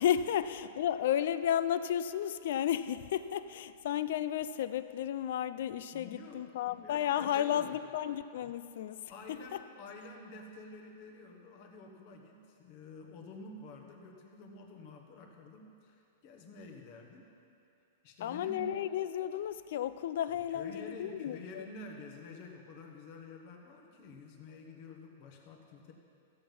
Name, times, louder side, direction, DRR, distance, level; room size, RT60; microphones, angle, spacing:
voice 1, 0.0-9.6 18.2-21.7, left 10 dB, 50° left, 13 dB, 0.4 m, -33 dB
voice 2, 5.9-7.8 9.1-17.3 18.0-18.7 20.3-25.9, left 3 dB, 30° left, 2 dB, 1.2 m, -49 dB
15.5 x 7.5 x 5.5 m, 2.7 s
supercardioid pair, 180°, 0 cm